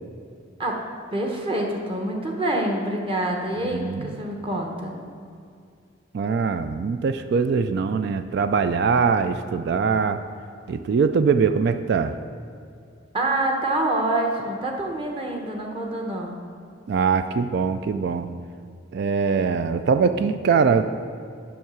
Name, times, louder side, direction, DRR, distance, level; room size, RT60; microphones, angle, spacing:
voice 1, 1.1-4.9 13.1-16.4, right 1 dB, 25° right, 1 dB, 0.9 m, -26 dB
voice 2, 3.7-4.1 6.1-10.2 10.7-12.2 16.9-18.3 18.9-20.8, right 5 dB, 55° right, 10 dB, 0.3 m, -22 dB
7.2 x 5.6 x 6.1 m, 2.3 s
head